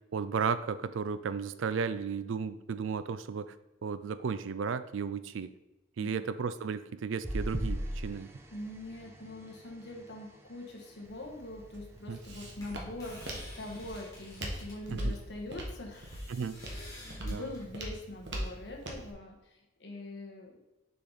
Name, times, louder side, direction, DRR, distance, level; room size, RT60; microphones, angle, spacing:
voice 1, 0.1-3.6 3.8-5.5 6.0-8.3 12.1-12.2 14.9-15.1 16.3-16.6 17.2-17.5, right 6 dB, 80° right, 13 dB, 0.4 m, -34 dB
sound 1, 7.2-11.9 12.5-12.8 13.1-13.2, equal, 15° right, 0.6 m, -40 dB
voice 2, 8.5-16.2 16.6-20.6, left 1 dB, 60° left, 1 dB, 1.3 m, -44 dB
Walk footsteps, 11.1-19.1, right 1 dB, 65° right, 1.2 m, -41 dB
sound 2, 12.0-18.1, left 1 dB, 20° left, 1.9 m, -51 dB
6.8 x 4.9 x 4.0 m, 0.97 s
head